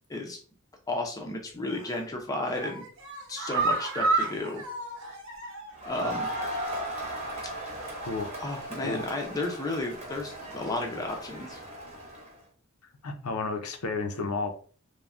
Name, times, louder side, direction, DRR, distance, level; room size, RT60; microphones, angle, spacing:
voice 1, 0.9-2.8 3.3-4.6 5.8-6.3 8.4-11.6, left 2 dB, 15° left, 1 dB, 0.4 m, -33 dB
sound 1, 1.7-2.0 2.4-5.8 6.1-6.2 6.6-6.7, right 3 dB, 60° right, 0.8 m, -30 dB
Crowd, 5.8-12.3, right 1 dB, 30° right, 0.9 m, -37 dB
voice 2, 13.0-14.5, left 3 dB, 70° left, 5 dB, 0.5 m, -31 dB
3.2 x 2.1 x 2.4 m, 0.42 s
head